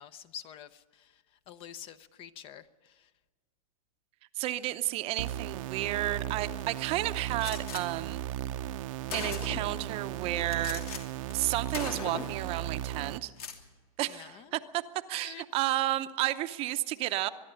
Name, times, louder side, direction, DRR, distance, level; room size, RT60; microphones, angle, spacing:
voice 1, 0.0-3.1 14.1-14.5 15.2-15.4, left 9 dB, 30° left, 14 dB, 0.7 m, -48 dB
voice 2, 4.4-8.2 9.1-10.8 11.3-13.3 14.0-14.8 15.1-17.3, right 15 dB, 30° right, 11 dB, 0.7 m, -32 dB
sound 1, 5.2-13.2, right 12 dB, 65° right, 0.8 m, -36 dB
Gunshot gunfire, 7.4-7.8 8.7-8.8 9.1-9.8 10.5-11.0 11.3-11.5 11.7-12.4 13.2-13.6, left 6 dB, 90° left, 2.9 m, -39 dB
23.0 x 11.5 x 9.9 m, 1.4 s
supercardioid pair, 150°, 18 cm